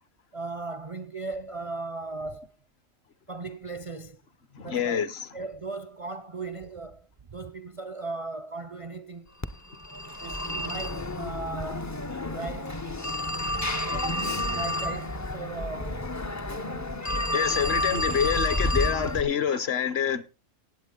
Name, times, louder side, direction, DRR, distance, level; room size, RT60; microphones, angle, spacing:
voice 1, 0.3-2.5 3.3-4.2 4.6-5.0 5.3-9.3 10.2-11.9 12.3-12.8 13.9-16.0, right 3 dB, 40° right, 0.5 m, -37 dB
voice 2, 4.5-5.3 16.7-16.8 17.1-20.2, left 8 dB, 55° left, 1.0 m, -27 dB
Telephone, 9.4-19.2, left 1 dB, 30° left, 0.3 m, -30 dB
16.0 x 8.7 x 3.8 m
omnidirectional pair, 1.4 m